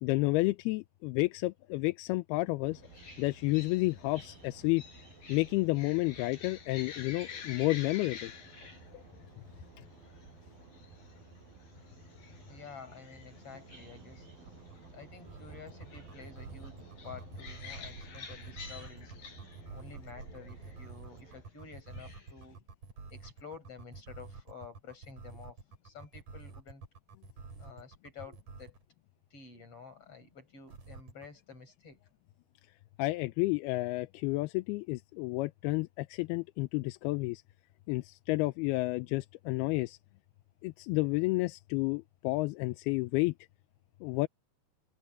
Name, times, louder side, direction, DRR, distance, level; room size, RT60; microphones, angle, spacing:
voice 1, 0.0-2.8 3.2-4.8 5.3-8.3 8.9-9.0 33.0-37.4 37.9-40.0 40.6-43.3 44.0-44.3, left 21 dB, 80° left, 2.5 m, -31 dB
sound 1, 2.6-21.4, right 4 dB, 60° right, 9.4 m, -54 dB
sound 2, 2.8-22.5, left 6 dB, 60° left, 8.4 m, -50 dB
voice 2, 12.5-14.3 14.9-16.8 17.0-19.1 19.7-22.6 23.1-25.6 25.8-26.8 27.6-28.7 29.3-32.0, left 5 dB, 35° left, 6.0 m, -50 dB
sound 3, 14.5-28.9 30.7-31.3, right 4 dB, 45° right, 5.4 m, -48 dB
open air
omnidirectional pair, 4.7 m